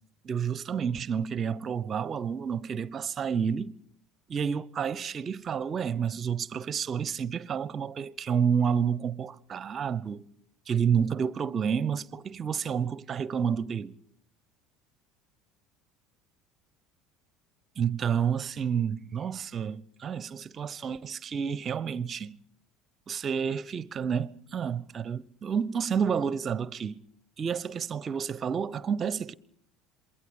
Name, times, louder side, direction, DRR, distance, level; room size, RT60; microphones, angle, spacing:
voice 1, 0.2-3.8 4.3-10.3 10.7-13.9 17.8-22.4 23.1-27.0 27.4-29.3, right 7 dB, 35° right, 0.8 m, -30 dB
27.5 x 22.5 x 5.3 m
figure-of-eight pair, 65°, 0 cm